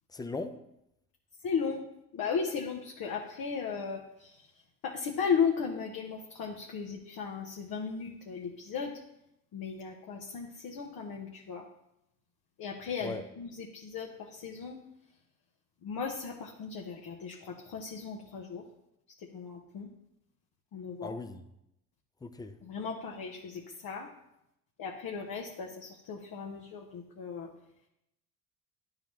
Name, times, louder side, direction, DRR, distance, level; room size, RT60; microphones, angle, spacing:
voice 1, 0.1-0.6 13.0-13.2 21.0-21.5 22.2-22.6, left 3 dB, 10° left, 10 dB, 0.4 m, -38 dB
voice 2, 1.4-1.8 2.1-4.3 4.8-9.0 9.5-11.6 12.6-14.8 15.8-18.6 19.2-19.9 20.7-21.1 22.6-24.1 24.8-27.5, left 6 dB, 45° left, 0 dB, 1.1 m, -36 dB
11.5 x 3.9 x 3.1 m, 0.83 s
hypercardioid pair, 60°, 49 cm